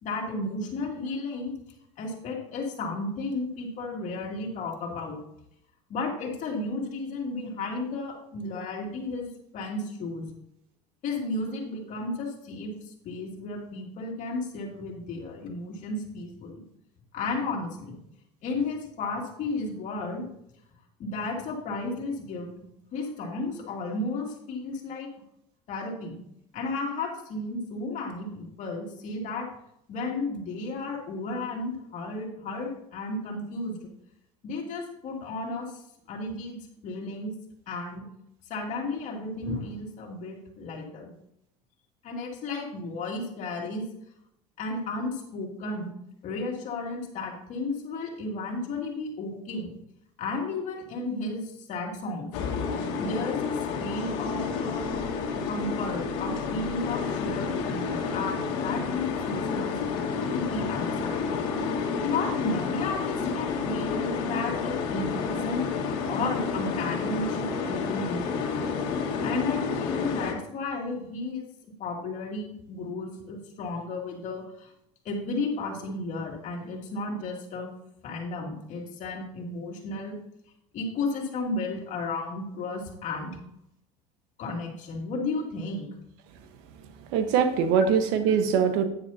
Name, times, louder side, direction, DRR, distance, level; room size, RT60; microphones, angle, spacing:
voice 1, 0.0-1.5 2.0-5.2 5.9-10.3 11.0-16.6 17.1-18.0 18.4-20.3 21.0-25.1 25.7-26.2 26.5-29.5 29.9-33.8 34.4-35.8 36.1-36.6 36.8-37.3 37.7-38.0 38.5-41.1 42.0-43.9 44.6-45.9 46.2-49.7 50.2-52.3 53.0-55.0 55.4-59.7 60.3-61.3 62.0-68.4 69.2-71.5 71.8-74.7 75.0-77.7 78.0-80.2 80.7-83.4 84.4-85.9, left 3 dB, 50° left, 0 dB, 2.6 m, -33 dB
sound 1, 52.3-70.3, left 5 dB, 80° left, 1.7 m, -30 dB
voice 2, 86.7-88.8, right 7 dB, 75° right, 8 dB, 1.2 m, -23 dB
10.0 x 9.7 x 2.8 m, 0.77 s
supercardioid pair, 120°, 16 cm